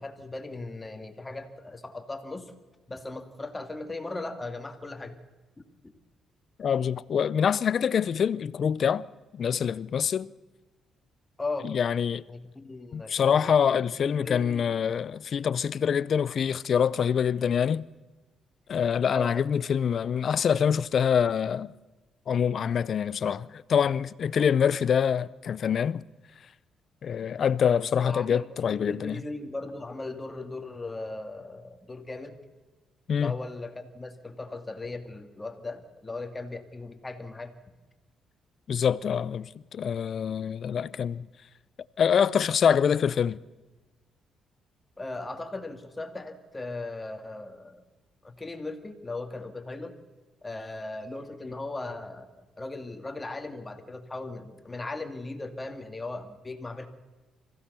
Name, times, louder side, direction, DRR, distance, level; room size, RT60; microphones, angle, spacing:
voice 1, 0.0-2.5 2.9-5.1 5.6-5.9 11.4-11.7 12.3-14.7 19.1-19.5 28.0-28.4 28.7-32.3 33.1-37.5 45.0-47.8 48.2-49.9 50.4-56.9, left 2 dB, 20° left, 2.4 m, -38 dB
voice 2, 6.6-9.0 9.3-10.3 11.6-12.2 12.9-17.9 18.7-21.7 22.3-26.0 27.0-29.2 33.1-33.3 38.7-41.3 42.0-43.4, left 7 dB, 55° left, 0.5 m, -25 dB
25.0 x 16.0 x 6.9 m
cardioid pair, 100°, 0 cm